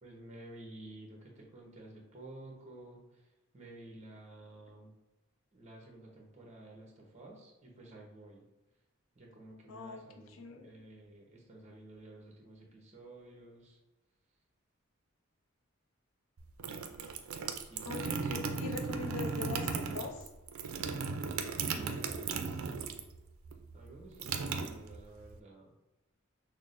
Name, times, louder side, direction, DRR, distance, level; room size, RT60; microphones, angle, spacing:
voice 1, 0.0-4.9 5.5-8.4 9.1-13.8 17.5-18.0 21.7-23.0 23.7-25.7, right 1 dB, 35° right, -1 dB, 0.8 m, -52 dB
voice 2, 9.7-10.7 17.8-20.3, left 4 dB, 70° left, 5 dB, 0.5 m, -42 dB
sound 1, 16.4-23.2 23.4-25.3, right 5 dB, 85° right, 0.4 m, -36 dB
5.9 x 2.0 x 2.5 m, 1.0 s
head